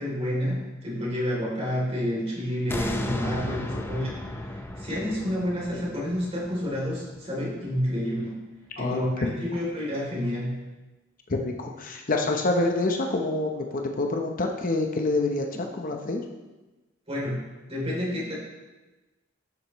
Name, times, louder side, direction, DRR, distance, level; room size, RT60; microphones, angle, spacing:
voice 1, 0.0-8.3 8.8-9.1 9.4-10.6 17.1-17.4 17.7-18.3, equal, 30° right, -4 dB, 3.0 m, -29 dB
sound 1, 2.7-7.8 8.3-8.4, left 1 dB, 10° left, 0.6 m, -34 dB
voice 2, 3.5-3.9 8.8-9.0 9.3-9.4 11.3-16.2, left 2 dB, 45° left, 3 dB, 0.8 m, -27 dB
12.0 x 7.8 x 3.1 m, 1.2 s
head